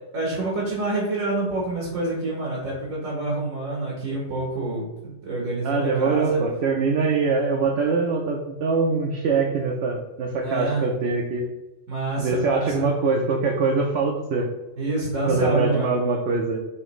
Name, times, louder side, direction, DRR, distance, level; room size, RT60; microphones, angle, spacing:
voice 1, 0.1-6.4 10.3-10.9 11.9-12.9 14.8-15.9, right 2 dB, 80° right, -4 dB, 1.5 m, -27 dB
voice 2, 5.6-11.4 12.2-14.5 15.3-16.6, right 4 dB, 60° right, 0 dB, 0.8 m, -23 dB
5.7 x 2.9 x 3.0 m, 0.99 s
omnidirectional pair, 1.3 m